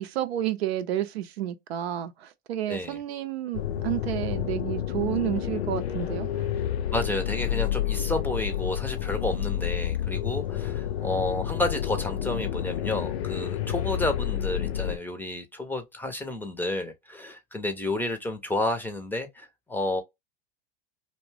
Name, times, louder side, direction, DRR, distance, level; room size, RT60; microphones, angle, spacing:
voice 1, 0.0-6.3, right 12 dB, 80° right, 0.6 m, -30 dB
voice 2, 2.7-3.0 6.9-20.0, left 2 dB, 5° left, 0.5 m, -31 dB
sound 1, 3.5-15.0, left 11 dB, 90° left, 0.5 m, -29 dB
2.6 x 2.2 x 3.2 m
hypercardioid pair, 110°, 31 cm